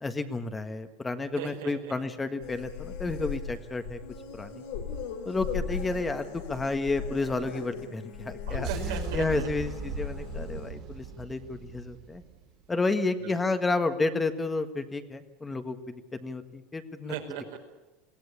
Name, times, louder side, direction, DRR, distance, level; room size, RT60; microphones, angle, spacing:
voice 1, 0.0-4.0 4.3-4.6 5.3-12.2 12.7-17.1, left 3 dB, 15° left, 8 dB, 1.6 m, -31 dB
voice 2, 1.4-1.9 8.5-9.5 13.2-13.4 17.1-17.6, right 8 dB, 80° right, 2 dB, 5.1 m, -37 dB
sound 1, 2.4-10.7, left 6 dB, 80° left, 3.5 m, -38 dB
sound 2, 8.6-12.7, right 7 dB, 55° right, 3.5 m, -38 dB
22.0 x 16.0 x 10.0 m, 1.1 s
supercardioid pair, 110°, 0 cm